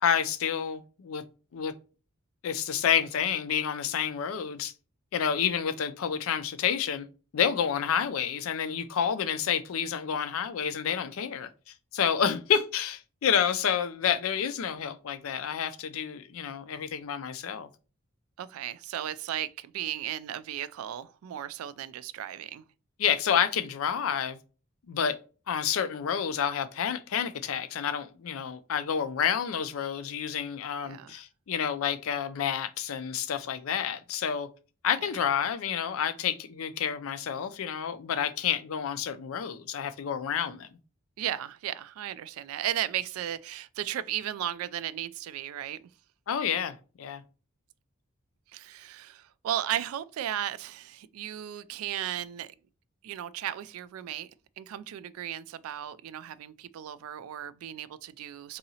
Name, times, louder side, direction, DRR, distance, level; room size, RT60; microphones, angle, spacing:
voice 1, 0.0-1.2 1.5-1.7 2.4-4.7 5.1-7.1 7.3-11.5 11.9-17.7 23.0-24.4 24.9-25.2 25.5-34.5 34.8-40.7 46.3-47.2, left 8 dB, 75° left, 0.4 m, -29 dB
voice 2, 18.4-22.6 30.8-31.2 41.2-45.8 48.5-52.5 53.0-54.3 54.6-58.6, right 11 dB, 85° right, 0.3 m, -35 dB
3.9 x 2.7 x 2.7 m
head